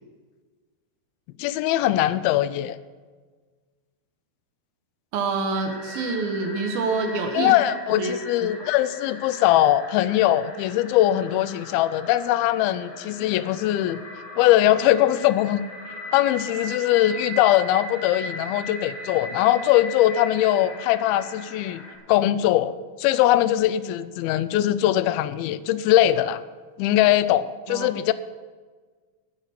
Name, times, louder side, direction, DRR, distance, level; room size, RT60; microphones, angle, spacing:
voice 1, 1.4-2.8 7.3-14.0 14.4-15.6 16.1-21.8 22.1-26.4 26.8-28.1, left 13 dB, 85° left, 14 dB, 2.4 m, -21 dB
voice 2, 5.1-7.5 8.0-8.1 8.6-8.7 27.7-27.9, right 4 dB, 75° right, 4 dB, 2.8 m, -26 dB
sound 1, 5.5-22.0, left 1 dB, 40° left, 2.7 m, -38 dB
16.0 x 5.8 x 7.6 m, 1.4 s
omnidirectional pair, 4.4 m